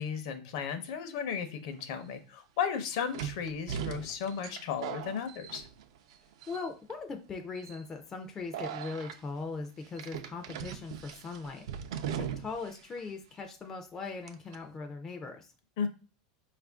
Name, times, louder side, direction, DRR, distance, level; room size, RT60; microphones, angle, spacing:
voice 1, 0.0-5.6 15.8-15.9, left 7 dB, 55° left, 8 dB, 0.6 m, -35 dB
sound 1, 1.8-1.9 3.1-6.1 6.4-6.9 7.5-7.8 8.5-9.2 10.0-12.7 13.0-13.1 14.3-14.6, right 8 dB, 75° right, 0.4 m, -39 dB
voice 2, 6.5-11.6 12.1-15.5, left 4 dB, 15° left, 3 dB, 0.3 m, -40 dB
4.7 x 2.5 x 3.4 m, 0.34 s
supercardioid pair, 170°, 3 cm